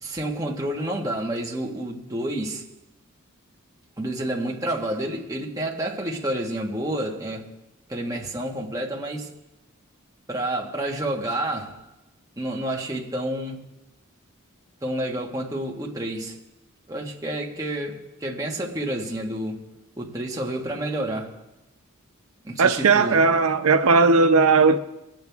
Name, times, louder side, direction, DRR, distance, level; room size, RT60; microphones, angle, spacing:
voice 1, 0.0-2.6 4.0-7.5 7.9-9.3 10.3-11.9 12.4-13.6 14.8-16.4 16.9-19.6 20.0-21.4 22.4-23.2, right 1 dB, 15° right, 1.6 m, -29 dB
voice 2, 22.6-24.8, right 4 dB, 90° right, 0.6 m, -17 dB
22.0 x 9.0 x 3.5 m
head